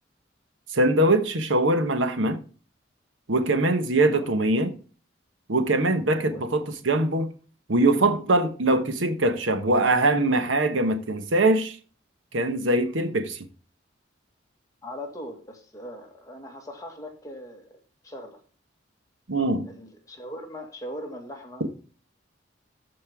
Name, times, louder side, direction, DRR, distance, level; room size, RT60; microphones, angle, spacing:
voice 1, 0.7-2.4 3.3-4.8 5.5-7.3 7.7-11.8 12.3-13.5 19.3-19.7, right 2 dB, 85° right, 1.1 m, -22 dB
voice 2, 3.9-4.3 6.1-6.4 12.8-13.1 14.8-18.4 19.7-21.7, equal, 20° left, 1.7 m, -40 dB
13.5 x 5.4 x 3.5 m
head